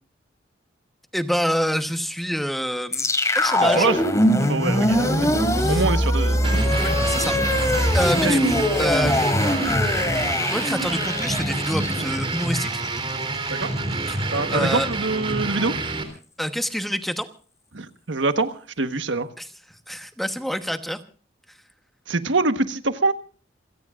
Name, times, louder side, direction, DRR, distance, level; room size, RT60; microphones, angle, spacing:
voice 1, 1.1-3.1 3.3-3.9 5.6-5.8 6.8-7.3 7.9-9.6 10.5-12.7 14.1-14.2 14.5-14.9 16.4-17.3 19.4-19.5 19.9-21.0, equal, ahead, 7 dB, 1.1 m, -27 dB
sound 1, 2.9-13.1, left 1 dB, 20° left, 2.7 m, -22 dB
voice 2, 3.6-4.1 4.4-6.7 8.2-8.4 13.5-13.7 14.3-15.7 17.7-19.3 22.1-23.1, right 3 dB, 85° right, 9 dB, 1.3 m, -25 dB
sound 2, 6.4-16.0, right 2 dB, 30° right, 3.2 m, -27 dB
28.5 x 17.0 x 2.5 m, 0.39 s
head